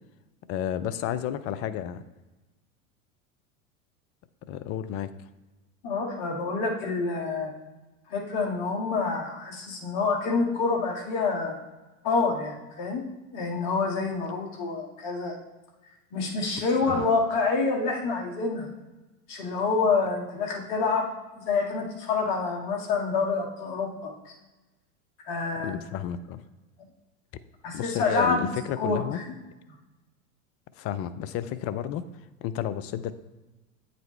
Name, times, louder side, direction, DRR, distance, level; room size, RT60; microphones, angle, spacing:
voice 1, 0.5-2.0 4.5-5.1 16.9-17.1 25.6-26.4 27.7-29.2 30.8-32.1 32.4-33.1, left 10 dB, 35° left, 13 dB, 0.5 m, -31 dB
voice 2, 5.8-7.5 8.1-11.6 12.0-13.0 13.3-15.4 16.1-18.7 19.3-21.1 21.4-24.4 25.3-25.7 27.6-29.3, left 4 dB, 55° left, 1 dB, 2.0 m, -27 dB
8.9 x 5.1 x 3.3 m, 1.1 s
hypercardioid pair, 95°, 43 cm